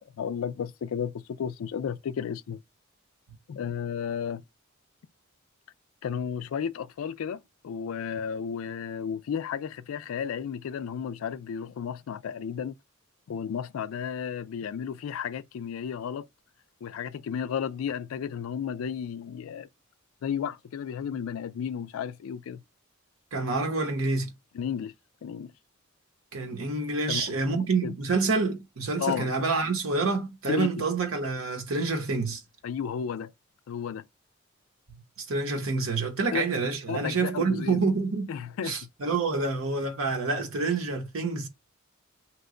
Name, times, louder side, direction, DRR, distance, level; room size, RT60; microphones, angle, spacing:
voice 1, 0.0-2.6 3.5-4.4 6.0-12.8 13.3-16.3 16.8-19.7 20.2-22.6 24.5-24.9 25.2-25.5 27.1-27.3 27.8-27.9 29.0-29.3 30.5-30.9 32.6-33.3 33.7-34.0 36.3-36.4 36.9-37.8 38.3-38.8, left 7 dB, 80° left, 0.3 m, -33 dB
voice 2, 23.3-24.3 26.3-32.4 35.2-38.3 38.6-41.5, right 3 dB, 75° right, 0.8 m, -27 dB
2.9 x 2.1 x 3.7 m
head